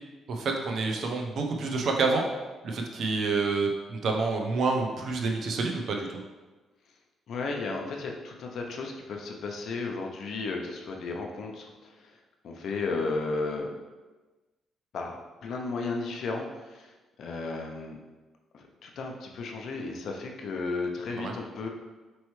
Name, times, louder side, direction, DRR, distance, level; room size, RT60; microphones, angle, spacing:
voice 1, 0.3-2.2 2.6-6.1 21.1-21.3, right 3 dB, 60° right, 2 dB, 0.6 m, -28 dB
voice 2, 7.3-12.1 12.4-13.7 14.9-16.9 17.2-18.0 18.5-21.7, left 3 dB, 65° left, 2 dB, 0.5 m, -34 dB
4.3 x 3.1 x 3.1 m, 1.2 s
cardioid pair, 90°, 0 cm